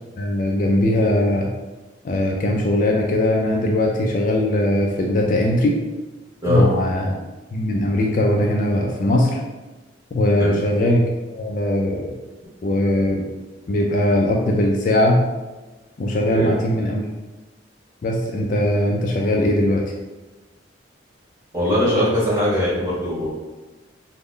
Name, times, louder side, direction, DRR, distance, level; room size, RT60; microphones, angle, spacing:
voice 1, 0.2-1.5 2.0-5.8 6.5-7.2 7.5-9.4 10.1-12.1 12.6-13.3 13.7-15.2 16.0-17.1 18.0-19.8, left 1 dB, 45° left, 0 dB, 0.3 m, -20 dB
voice 2, 21.5-23.3, equal, 15° right, -9 dB, 1.4 m, -21 dB
3.4 x 2.0 x 3.7 m, 1.2 s
head